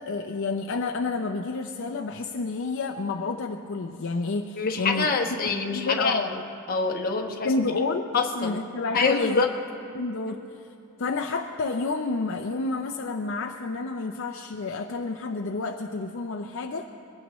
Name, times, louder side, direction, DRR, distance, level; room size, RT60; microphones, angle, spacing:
voice 1, 0.0-5.1 5.7-6.3 7.4-9.5 9.9-10.7 11.0-16.9, left 3 dB, 60° left, 4 dB, 0.5 m, -30 dB
voice 2, 4.6-6.3 6.7-7.5 8.1-8.5 8.9-9.5, left 4 dB, 40° left, 2 dB, 1.1 m, -25 dB
22.0 x 17.0 x 3.1 m, 2.8 s
head